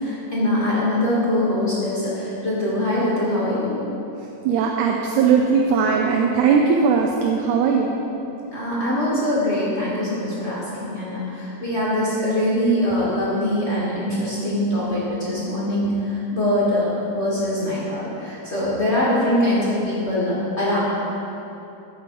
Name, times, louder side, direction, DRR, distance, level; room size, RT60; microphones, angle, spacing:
voice 1, 0.0-3.7 8.5-20.8, left 1 dB, 35° left, -8 dB, 1.1 m, -23 dB
voice 2, 4.5-7.9, right 6 dB, 80° right, 1 dB, 2.0 m, -19 dB
13.0 x 5.4 x 4.4 m, 3.0 s
omnidirectional pair, 3.5 m